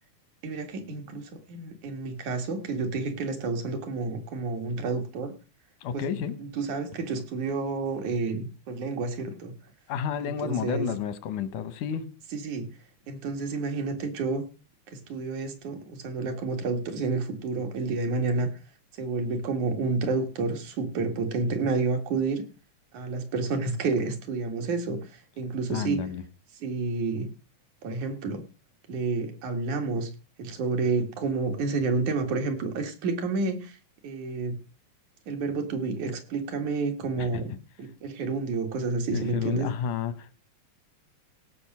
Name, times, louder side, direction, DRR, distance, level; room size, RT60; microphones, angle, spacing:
voice 1, 0.4-5.3 5.9-9.5 10.2-10.9 12.3-12.7 13.1-14.4 14.9-18.5 19.0-22.4 22.9-26.0 26.6-27.3 27.8-28.4 28.9-30.1 30.4-33.8 34.0-34.6 35.3-37.5 37.8-39.7, right 3 dB, 75° right, 3.3 m, -30 dB
voice 2, 5.8-6.3 9.9-12.1 25.7-26.2 37.2-37.3 39.1-40.3, left 8 dB, 85° left, 2.6 m, -31 dB
17.0 x 6.4 x 6.1 m
omnidirectional pair, 3.5 m